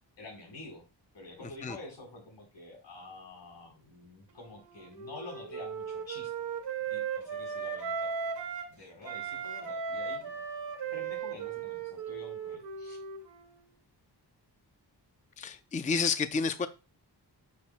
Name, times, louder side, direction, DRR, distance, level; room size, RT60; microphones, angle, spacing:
voice 1, 0.2-0.8 1.1-6.3 6.9-8.1 8.7-10.4 10.9-13.0, left 2 dB, 85° left, 0 dB, 4.1 m, -48 dB
Wind instrument woodwind instrument, 4.3-8.7 9.0-13.6, right 6 dB, 85° right, 1.9 m, -37 dB
voice 2, 15.4-16.7, left 5 dB, 20° left, 11 dB, 0.4 m, -30 dB
9.7 x 6.3 x 2.2 m, 0.30 s
wide cardioid pair, 110°, 41 cm